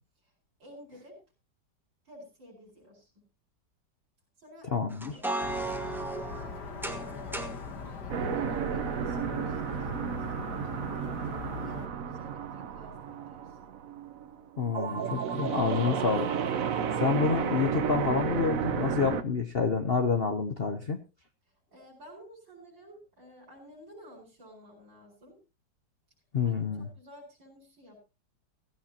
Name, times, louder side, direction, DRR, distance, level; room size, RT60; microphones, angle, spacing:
voice 1, 0.6-1.2 2.1-3.1 4.4-4.7 5.1-10.5 10.9-13.7 15.5-17.0 21.5-25.4 26.4-28.0, equal, 85° right, -4 dB, 5.7 m, -52 dB
voice 2, 4.7-5.2 14.6-16.3 17.0-21.0 26.3-26.9, left 5 dB, 45° left, 7 dB, 0.9 m, -28 dB
sound 1, 4.9-7.6, right 2 dB, ahead, 1.3 m, -35 dB
sound 2, 5.4-11.9, left 5 dB, 65° left, 2.1 m, -41 dB
sound 3, 8.1-19.2, right 7 dB, 55° right, 1.2 m, -32 dB
16.0 x 15.5 x 2.9 m, 0.29 s
omnidirectional pair, 1.9 m